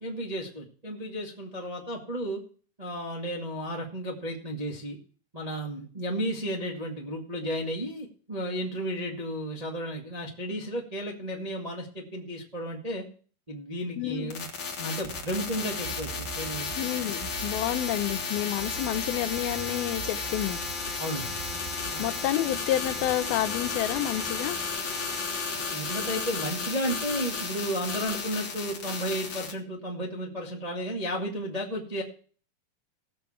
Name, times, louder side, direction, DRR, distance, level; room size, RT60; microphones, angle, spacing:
voice 1, 0.0-2.4 2.8-5.0 5.3-13.0 13.5-14.5 14.8-16.7 21.0-21.4 21.9-22.1 25.7-32.0, equal, 25° right, -1 dB, 0.8 m, -33 dB
voice 2, 14.0-14.3 16.8-20.6 22.0-24.6, left 13 dB, 75° left, 12 dB, 2.4 m, -29 dB
sound 1, 14.3-29.5, left 5 dB, 50° left, 1.4 m, -33 dB
sound 2, 15.0-26.1, right 8 dB, 75° right, 2.8 m, -44 dB
sound 3, 22.8-28.1, right 3 dB, 50° right, 4.5 m, -46 dB
18.5 x 6.7 x 4.4 m, 0.41 s
omnidirectional pair, 4.7 m